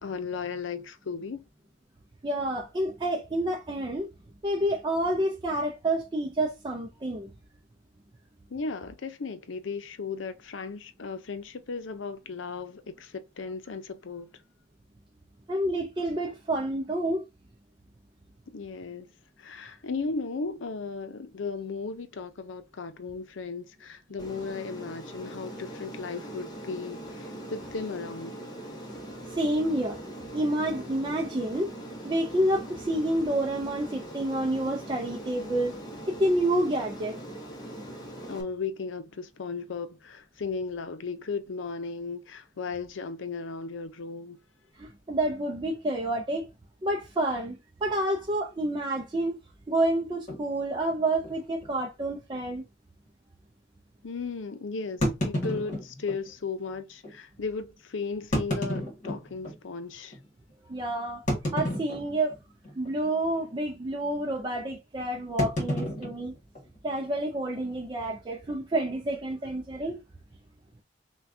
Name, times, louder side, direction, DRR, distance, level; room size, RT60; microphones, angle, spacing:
voice 1, 0.0-1.4 8.5-14.3 18.5-19.1 19.4-28.3 38.3-44.4 54.0-60.2, left 4 dB, 85° left, 0.6 m, -36 dB
voice 2, 2.2-4.1 4.4-7.3 15.5-17.3 29.3-30.0 30.3-31.7 32.0-35.8 36.1-37.2 44.8-46.5 46.8-49.4 49.7-52.6 60.7-61.2 61.5-62.4 62.8-66.3 66.8-70.0, right 1 dB, 25° right, 0.5 m, -28 dB
Aircraft, 24.2-38.4, right 1 dB, 20° left, 0.9 m, -41 dB
sound 1, 50.3-50.5 51.2-51.3 51.6-51.7 52.3-52.4 55.0-56.2 57.0-57.1 58.2-59.6 60.1-60.2 61.3-62.4 62.6-63.0 63.3-63.6 65.4-67.0, equal, 40° left, 1.7 m, -31 dB
5.7 x 2.2 x 2.7 m
head